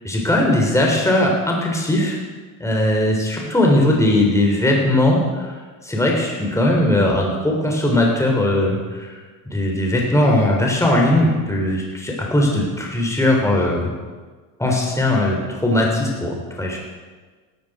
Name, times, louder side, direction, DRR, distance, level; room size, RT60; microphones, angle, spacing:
voice 1, 0.0-2.2 2.6-5.5 5.8-9.2 9.5-13.9 14.6-16.8, left 1 dB, 5° left, -1 dB, 3.7 m, -19 dB
16.0 x 13.5 x 5.0 m, 1.4 s
supercardioid pair, 95°, 40 cm